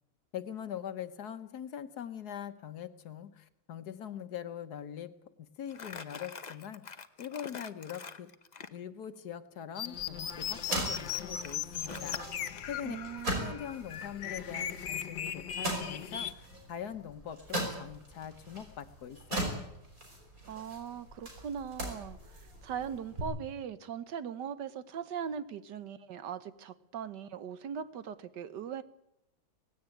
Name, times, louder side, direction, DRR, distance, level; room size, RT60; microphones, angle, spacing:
voice 1, 0.3-5.1 5.4-8.3 8.7-12.2 12.7-13.0 13.4-19.6, left 9 dB, 65° left, 11 dB, 1.5 m, -42 dB
Crumpling crinkling, 5.7-8.8 10.4-12.6, left 5 dB, 35° left, 0.7 m, -45 dB
sound 1, 9.7-16.3, left 9 dB, 80° left, 1.7 m, -38 dB
sound 2, 9.9-23.2, right 1 dB, 50° right, 6.0 m, -40 dB
voice 2, 12.8-13.6 20.5-22.2 22.6-28.8, right 8 dB, 70° right, 14 dB, 1.6 m, -40 dB
18.5 x 17.0 x 9.1 m, 0.85 s
omnidirectional pair, 1.9 m